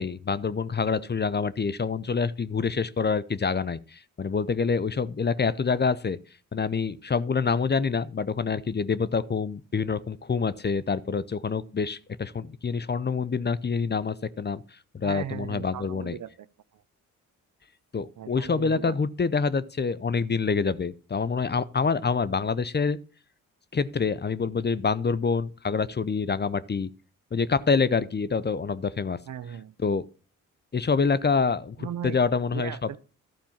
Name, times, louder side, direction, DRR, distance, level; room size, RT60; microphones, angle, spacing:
voice 1, 0.0-6.2 6.5-14.6 14.9-16.1 17.9-23.0 23.7-26.9 27.3-29.2 29.8-30.1 30.7-32.7, left 5 dB, 30° left, 0.7 m, -26 dB
voice 2, 15.0-16.5 16.7-16.8 18.2-19.0 29.3-29.7 31.8-32.2 32.5-33.0, right 10 dB, 60° right, 0.7 m, -37 dB
12.0 x 4.4 x 7.2 m
supercardioid pair, 50°, 34 cm